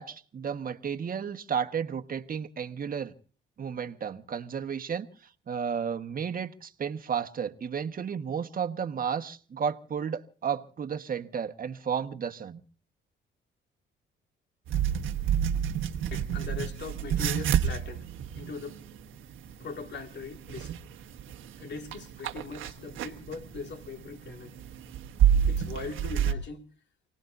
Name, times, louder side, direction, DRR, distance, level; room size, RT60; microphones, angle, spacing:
voice 1, 0.0-3.1 3.6-5.1 5.5-12.6, right 7 dB, 45° right, 1.4 m, -33 dB
sound 1, 14.7-26.3, right 9 dB, 85° right, 1.4 m, -30 dB
voice 2, 16.1-18.1 18.4-18.8 19.6-20.7 21.6-24.5 25.5-26.6, left 4 dB, 60° left, 2.3 m, -40 dB
29.5 x 18.5 x 2.7 m
cardioid pair, 90°, 20 cm